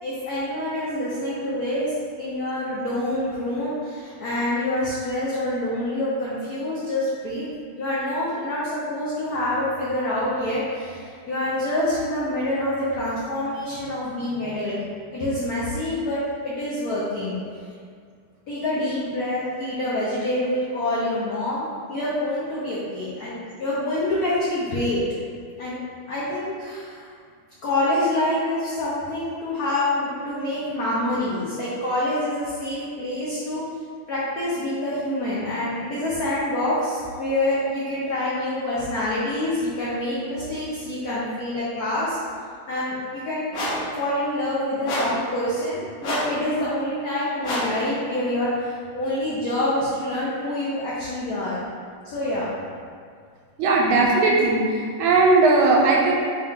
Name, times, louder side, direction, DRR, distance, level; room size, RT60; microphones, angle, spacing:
voice 1, 0.0-7.5 7.7-14.8 15.1-17.4 18.5-25.0 25.6-25.8 26.1-27.1 27.6-33.6 34.1-42.2 42.7-43.6 43.9-51.6 52.0-52.5, left 1 dB, 80° left, -8 dB, 0.8 m, -26 dB
sound 1, 43.5-43.9 44.8-45.2 46.0-46.4 47.4-47.8, left 1 dB, 65° left, 1.4 m, -27 dB
voice 2, 53.6-56.1, right 3 dB, 80° right, -3 dB, 1.4 m, -18 dB
4.1 x 2.3 x 3.6 m, 2.1 s
omnidirectional pair, 2.4 m